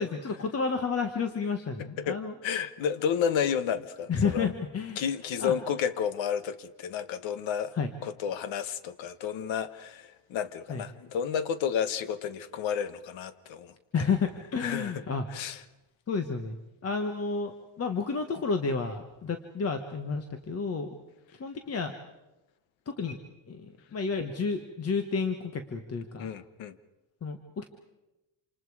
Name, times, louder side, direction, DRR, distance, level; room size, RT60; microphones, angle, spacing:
voice 1, 0.0-2.3 4.1-5.0 5.4-5.5 7.7-7.9 10.7-10.8 13.9-15.3 16.1-16.6 16.8-20.9 21.4-21.9 22.9-23.2 23.5-26.3 27.2-27.6, left 5 dB, 30° left, 7 dB, 1.3 m, -31 dB
voice 2, 2.0-4.5 5.0-7.7 8.0-13.7 14.6-14.9 15.3-15.6 26.2-26.8, left 8 dB, 65° left, 14 dB, 1.3 m, -31 dB
27.5 x 27.5 x 4.8 m, 0.99 s
cardioid pair, 170°, 48 cm